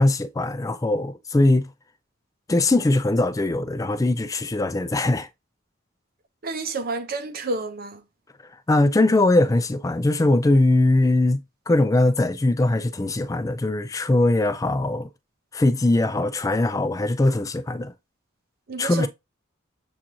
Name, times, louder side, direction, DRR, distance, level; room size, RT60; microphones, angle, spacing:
voice 1, 0.0-1.7 2.5-5.3 8.7-15.1 15.5-17.9 18.8-19.1, left 2 dB, 15° left, 0.3 m, -21 dB
voice 2, 6.4-8.0 18.7-19.1, right 3 dB, 45° right, 0.6 m, -30 dB
7.1 x 2.5 x 3.0 m
head